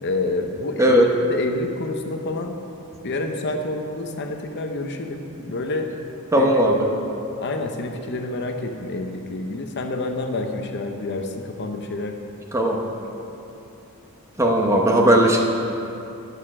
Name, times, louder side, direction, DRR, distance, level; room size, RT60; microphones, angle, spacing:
voice 1, 0.0-1.0 1.3-2.6 3.0-5.9 6.4-6.5 7.4-12.2, left 2 dB, 50° left, 4 dB, 0.7 m, -28 dB
voice 2, 0.8-1.1 6.3-6.9 12.5-12.8 14.4-15.4, right 1 dB, 15° right, 0 dB, 0.8 m, -17 dB
9.9 x 6.6 x 6.2 m, 2.7 s
head